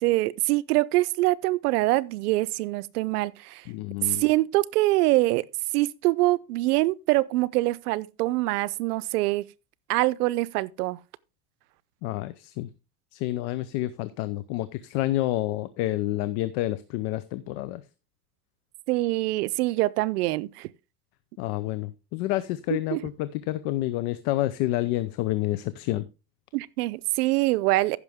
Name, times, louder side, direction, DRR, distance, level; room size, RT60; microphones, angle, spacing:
voice 1, 0.0-3.6 4.0-5.4 5.7-9.4 9.9-11.0 18.9-20.7 22.7-23.0 26.5-28.0, right 19 dB, 85° right, 0.7 m, -24 dB
voice 2, 3.7-4.2 12.0-12.7 13.1-17.8 21.4-26.0, left 15 dB, 55° left, 0.7 m, -29 dB
15.0 x 6.2 x 3.5 m
supercardioid pair, 145°, 45 cm